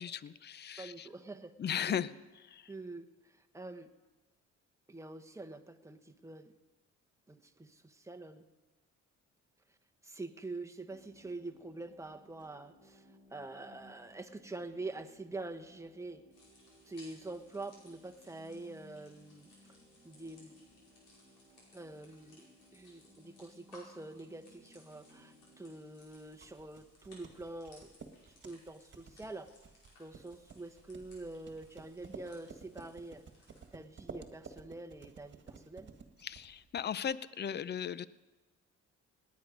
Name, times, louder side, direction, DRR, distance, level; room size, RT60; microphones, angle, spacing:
voice 1, 0.0-1.1 1.6-2.1 2.5-2.7 36.2-38.1, left 8 dB, 35° left, 17 dB, 0.5 m, -37 dB
voice 2, 0.8-1.6 1.9-2.0 2.7-3.9 4.9-6.5 7.3-8.5 10.0-16.2 16.8-19.5 20.0-20.6 21.7-27.9 28.4-29.5 30.0-33.2 33.7-35.9, right 2 dB, 10° right, 5 dB, 1.1 m, -46 dB
sound 1, 10.9-25.8, left 1 dB, 15° left, 4.6 m, -62 dB
sound 2, 16.3-33.7, left 2 dB, 85° left, 5.2 m, -63 dB
sound 3, 26.1-37.1, right 4 dB, 40° right, 1.7 m, -53 dB
18.5 x 9.6 x 5.2 m, 1.1 s
cardioid pair, 90°, 30 cm